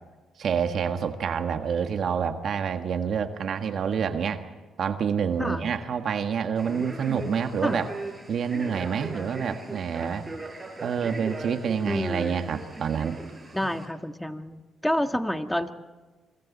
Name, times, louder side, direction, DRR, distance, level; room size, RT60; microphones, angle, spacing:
voice 1, 0.4-4.4 4.8-7.9 8.3-10.2 10.8-13.2, right 7 dB, 60° right, 7 dB, 1.6 m, -27 dB
Male speech man speaking, 6.6-13.9, right 2 dB, 20° right, 7.1 m, -39 dB
voice 2, 11.9-12.5 13.5-15.7, left 1 dB, 5° left, 7 dB, 1.5 m, -29 dB
27.5 x 24.0 x 4.2 m, 1.3 s
cardioid pair, 90°, 0 cm